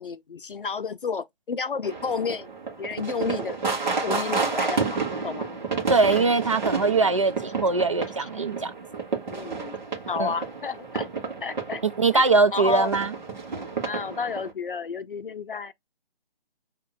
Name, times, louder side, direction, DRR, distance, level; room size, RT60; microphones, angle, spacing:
voice 1, 0.0-2.5 2.8-3.6 4.0-5.6 8.2-8.3 9.3-9.8 10.1-11.1 11.4-11.8 12.1-12.2 12.5-12.9 13.8-15.7, left 5 dB, 60° left, 0.5 m, -31 dB
sound 1, 1.8-14.5, right 4 dB, 50° right, 1.6 m, -31 dB
voice 2, 5.9-8.7 10.2-10.3 11.8-13.1, right 3 dB, 35° right, 0.4 m, -22 dB
6.8 x 2.9 x 2.2 m
figure-of-eight pair, 145°, 30 cm